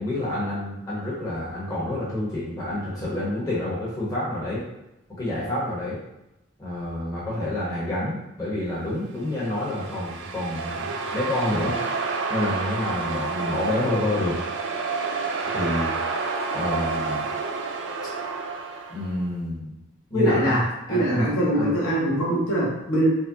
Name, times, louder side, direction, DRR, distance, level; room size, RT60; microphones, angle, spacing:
voice 1, 0.0-4.6 5.2-6.0 6.6-11.7 12.3-14.4 15.5-15.9 16.5-17.2 18.9-19.7 20.1-20.6 20.9-21.3 21.5-21.7, left 1 dB, 15° left, -8 dB, 1.0 m, -28 dB
sound 1, 9.3-19.1, right 4 dB, 55° right, 0.3 m, -29 dB
voice 2, 20.1-20.6 20.9-23.1, right 1 dB, 70° left, -6 dB, 1.2 m, -22 dB
4.8 x 2.2 x 2.7 m, 0.91 s
head